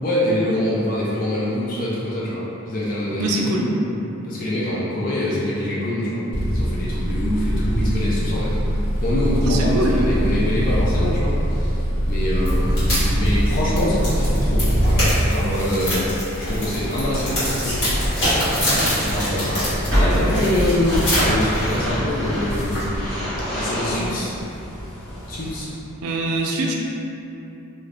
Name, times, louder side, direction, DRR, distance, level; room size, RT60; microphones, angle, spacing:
voice 1, 0.0-3.5 4.2-6.2 6.5-16.1 16.4-17.9 18.7-23.1 23.5-24.3 25.3-25.7, left 1 dB, 40° left, -7 dB, 0.4 m, -25 dB
voice 2, 3.2-3.9 9.4-10.2 26.0-26.7, right 1 dB, 80° right, -1 dB, 0.4 m, -23 dB
sound 1, 6.3-15.2, equal, 80° left, 1.2 m, -22 dB
sound 2, 12.3-23.1, equal, 55° left, 1.4 m, -25 dB
sound 3, 16.6-25.7, equal, 5° left, 1.3 m, -27 dB
2.7 x 2.5 x 3.3 m, 2.9 s
head